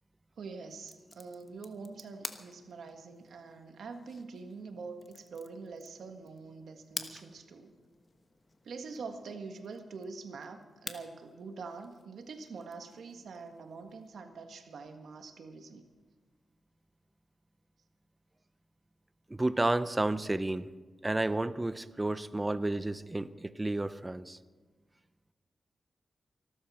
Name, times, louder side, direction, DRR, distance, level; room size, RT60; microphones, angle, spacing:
voice 1, 0.4-7.7 8.6-15.9, right 4 dB, 85° right, 5 dB, 1.7 m, -45 dB
sound 1, 0.7-14.2, left 3 dB, 45° left, 1.3 m, -50 dB
voice 2, 19.3-20.7 21.0-24.4, right 2 dB, 20° right, 13 dB, 0.7 m, -31 dB
24.0 x 13.0 x 4.3 m, 1.4 s
cardioid pair, 80°, 0 cm